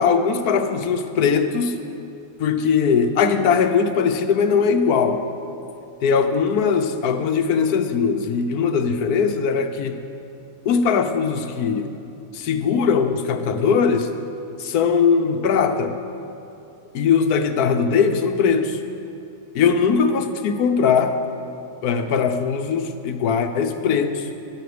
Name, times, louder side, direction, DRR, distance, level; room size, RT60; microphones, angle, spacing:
voice 1, 0.0-1.8 2.4-5.2 6.0-10.0 10.6-12.0 12.3-14.1 14.6-15.9 16.9-18.8 19.5-21.2 21.8-24.2, left 6 dB, 75° left, 8 dB, 1.3 m, -20 dB
14.5 x 11.0 x 5.1 m, 2.7 s
omnidirectional pair, 1.6 m